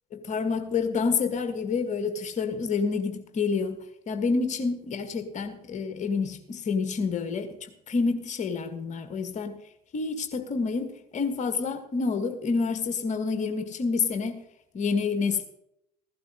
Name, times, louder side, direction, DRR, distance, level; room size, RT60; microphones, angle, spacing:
voice 1, 0.1-3.8 4.1-9.6 9.9-14.4 14.7-15.4, left 4 dB, 40° left, 7 dB, 1.8 m, -28 dB
15.5 x 11.5 x 3.9 m, 0.78 s
figure-of-eight pair, 60°, 20 cm